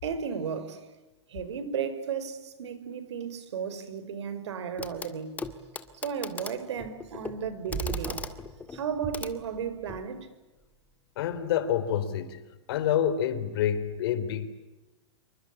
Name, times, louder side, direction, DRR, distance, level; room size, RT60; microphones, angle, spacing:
voice 1, 0.0-0.9 1.3-5.3 5.9-8.2 8.7-10.3, right 7 dB, 75° right, 5.5 m, -34 dB
Clock, 4.8-5.1 5.4-10.1 11.3-11.4, left 4 dB, 10° left, 1.9 m, -40 dB
sound 1, 7.7-8.4 9.0-9.9, right 7 dB, 20° right, 4.6 m, -37 dB
voice 2, 11.2-12.4 12.7-14.5, left 9 dB, 55° left, 3.9 m, -27 dB
27.5 x 24.0 x 8.7 m
hypercardioid pair, 145°, 15 cm